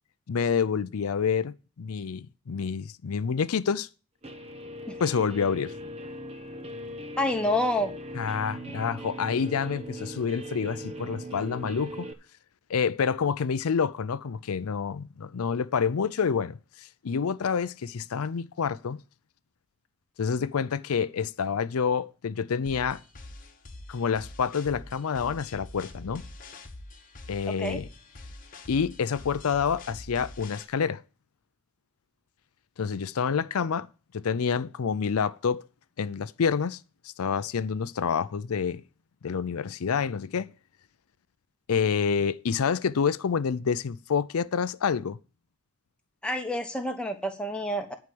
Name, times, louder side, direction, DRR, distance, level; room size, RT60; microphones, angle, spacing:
voice 1, 0.3-3.9 5.0-5.7 8.1-12.1 12.7-16.6 17.0-19.0 20.2-23.0 23.9-26.2 27.3-27.9 28.7-31.0 32.8-33.9 34.1-35.7 36.0-36.8 37.2-38.8 39.2-40.5 41.7-45.2, left 6 dB, 90° left, 0.5 m, -28 dB
Guitar, 4.2-12.1, equal, 30° right, 0.8 m, -39 dB
voice 2, 7.2-7.9 27.5-27.8 46.2-47.9, left 1 dB, 5° left, 1.1 m, -28 dB
sound 1, 22.7-30.7, left 2 dB, 40° left, 1.2 m, -45 dB
10.5 x 4.9 x 7.7 m
head